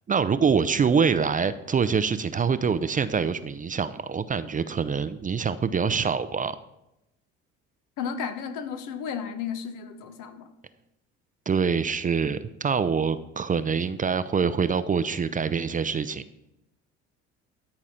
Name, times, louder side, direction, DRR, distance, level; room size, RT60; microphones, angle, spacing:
voice 1, 0.1-6.6 11.5-16.2, right 6 dB, 25° right, 0.6 m, -25 dB
voice 2, 8.0-10.5, left 7 dB, 70° left, 1.2 m, -33 dB
13.0 x 4.9 x 5.7 m
hypercardioid pair, 70°, 32 cm